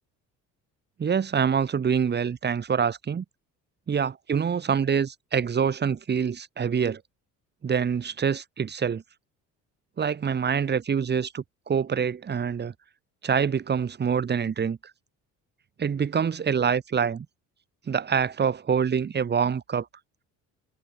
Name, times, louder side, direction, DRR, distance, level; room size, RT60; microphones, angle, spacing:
voice 1, 1.0-3.2 3.9-7.0 7.6-9.0 10.0-12.7 13.2-14.8 15.8-17.3 17.9-19.9, right 7 dB, 30° right, 3.5 m, -25 dB
cardioid pair, 130°, 31 cm